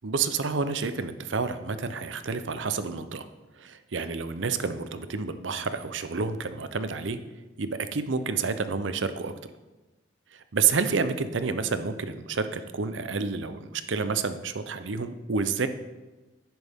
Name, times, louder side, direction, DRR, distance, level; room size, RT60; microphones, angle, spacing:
voice 1, 0.0-3.3 3.6-7.2 7.6-9.3 10.3-15.7, right 5 dB, 80° right, 11 dB, 0.7 m, -29 dB
10.5 x 10.5 x 3.6 m, 1.2 s
head